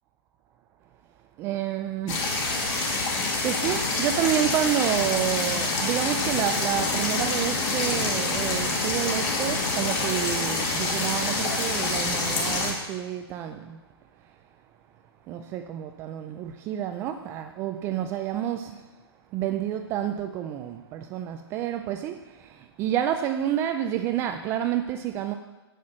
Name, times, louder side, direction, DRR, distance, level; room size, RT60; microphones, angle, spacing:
voice 1, 1.4-2.3 2.9-13.8 15.3-18.8 19.3-25.3, right 11 dB, 15° right, 7 dB, 0.3 m, -29 dB
sound 1, 2.1-12.7, left 3 dB, 30° left, 2.2 m, -26 dB
8.4 x 7.9 x 6.3 m, 1.2 s
hypercardioid pair, 140°, 14 cm